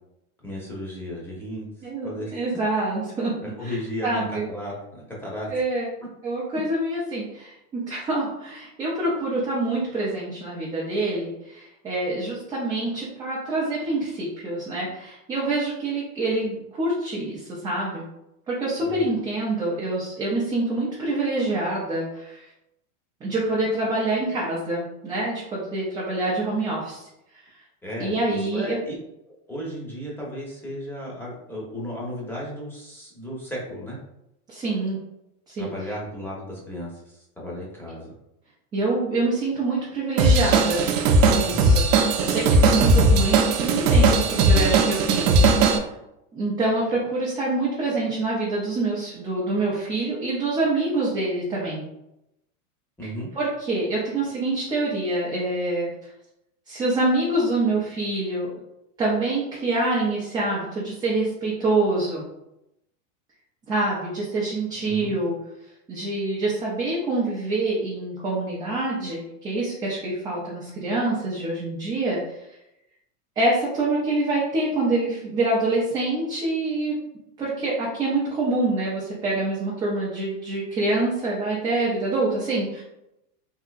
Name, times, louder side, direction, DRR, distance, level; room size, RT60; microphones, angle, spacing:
voice 1, 0.4-1.7 2.0-2.4 3.6-5.5 18.8-19.0 27.8-28.9 29.3-34.0 35.6-38.1 41.4-41.8 53.0-53.3 64.8-65.1, equal, 5° left, -5 dB, 0.8 m, -34 dB
voice 2, 1.8-3.3 3.6-3.8 4.0-4.5 5.5-5.9 6.2-18.0 18.5-22.5 23.2-27.1 27.3-27.4 28.0-28.8 34.5-35.0 35.5-35.7 38.7-40.9 41.3-41.7 42.2-45.9 46.3-51.8 53.4-55.9 56.7-58.5 59.0-62.2 63.7-65.4 65.9-72.4 73.4-77.0 77.4-82.8, right 2 dB, 10° right, -6 dB, 0.3 m, -26 dB
Drum kit / Drum, 40.2-45.8, right 3 dB, 65° right, 0.6 m, -18 dB
3.5 x 2.8 x 2.4 m, 0.85 s
supercardioid pair, 135°, 43 cm